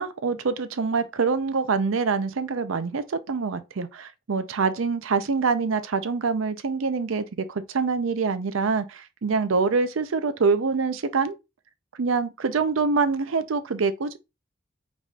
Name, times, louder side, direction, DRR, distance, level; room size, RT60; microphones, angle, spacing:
voice 1, 0.0-11.4 12.0-14.2, right 4 dB, 90° right, 0.5 m, -25 dB
4.8 x 4.1 x 2.3 m
head